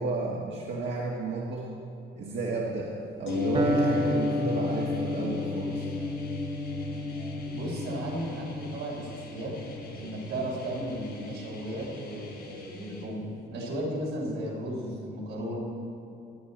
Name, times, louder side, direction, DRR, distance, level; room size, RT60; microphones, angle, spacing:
voice 1, 0.0-1.7 2.1-2.9 3.2-5.9, right 3 dB, 65° right, -3 dB, 1.5 m, -32 dB
sound 1, 3.3-13.1 13.4-13.5, left 3 dB, 80° left, 1.6 m, -35 dB
sound 2, 3.3-13.1, left 4 dB, 55° left, 3.4 m, -47 dB
Electric guitar, 3.5-11.4, left 1 dB, 30° right, 1.2 m, -34 dB
voice 2, 7.5-9.5 10.0-15.6, right 1 dB, 90° right, -4 dB, 3.6 m, -35 dB
19.0 x 9.4 x 4.2 m, 2.6 s
cardioid pair, 90°, 20 cm